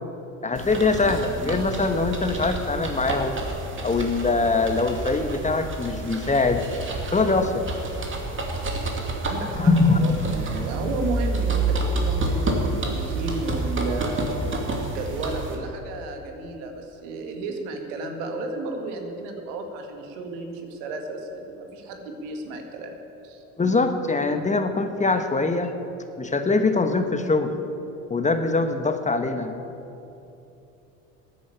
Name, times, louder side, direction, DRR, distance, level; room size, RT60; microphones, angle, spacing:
voice 1, 0.4-3.4 3.8-6.6 7.1-7.6 9.5-10.0 23.6-25.7 26.2-27.5 28.1-29.5, left 3 dB, 20° left, 7 dB, 1.2 m, -23 dB
sound 1, 0.5-15.5, right 2 dB, 30° right, 2.6 m, -29 dB
voice 2, 9.2-22.9 23.2-23.4, right 3 dB, 75° right, 4 dB, 2.1 m, -33 dB
13.0 x 9.4 x 8.7 m, 2.9 s
hypercardioid pair, 75°, 39 cm